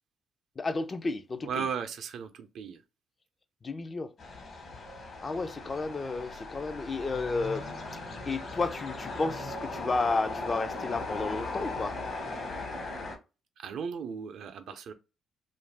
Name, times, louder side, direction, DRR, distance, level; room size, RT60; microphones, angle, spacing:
voice 1, 0.6-1.7 3.6-4.1 5.2-7.8 8.2-12.0 14.7-14.8, left 3 dB, 35° left, 0.4 m, -32 dB
voice 2, 1.4-2.8 13.6-14.9, right 6 dB, 70° right, 0.5 m, -36 dB
sound 1, 4.2-13.2, left 3 dB, 55° left, 1.2 m, -38 dB
2.5 x 2.3 x 3.3 m
cardioid pair, 90°, 0 cm